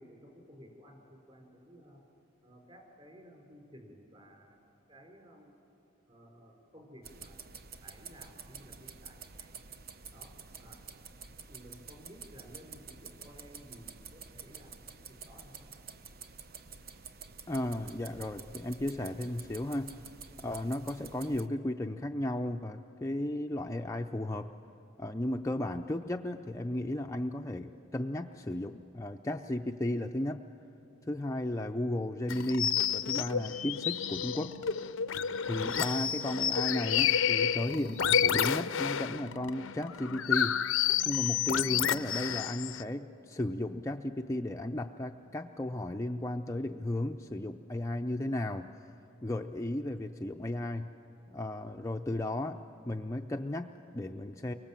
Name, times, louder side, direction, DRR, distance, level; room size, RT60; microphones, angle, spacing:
voice 1, 0.0-2.0 2.4-4.6 4.9-5.6 6.1-7.4 7.8-9.5 10.1-10.8 11.5-15.7, equal, 30° right, 1 dB, 5.0 m, -55 dB
sound 1, 7.0-21.5, right 5 dB, 50° right, 0.8 m, -49 dB
voice 2, 17.5-19.9 20.4-24.5 25.0-30.4 31.1-34.6 35.4-40.6 41.0-48.7 49.2-50.9 51.3-54.5, left 1 dB, 15° left, 3 dB, 0.5 m, -34 dB
sound 2, 32.3-42.8, left 9 dB, 70° left, 0.6 m, -30 dB
29.5 x 24.5 x 7.4 m, 2.8 s
head